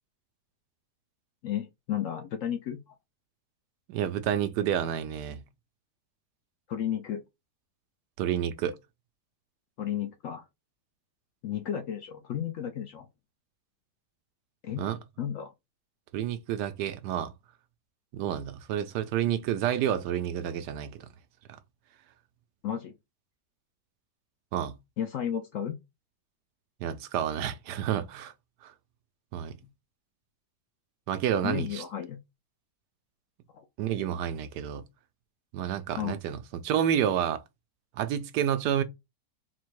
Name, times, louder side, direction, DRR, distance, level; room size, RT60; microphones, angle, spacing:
voice 1, 1.4-3.0 6.7-7.2 9.8-10.4 11.4-13.1 14.6-14.8 15.2-15.5 22.6-22.9 25.0-25.8 31.4-32.2 33.5-33.6 36.0-36.2, left 9 dB, 70° left, 0.8 m, -33 dB
voice 2, 3.9-5.4 8.2-8.8 14.8-15.0 16.1-17.3 18.1-21.1 21.5-21.6 24.5-24.7 26.8-28.3 28.6-28.7 29.3-29.6 31.1-31.8 33.8-34.8 35.5-36.4 36.6-37.4 38.0-38.8, right 10 dB, 80° right, 1.2 m, -29 dB
4.2 x 2.2 x 4.6 m
omnidirectional pair, 1.8 m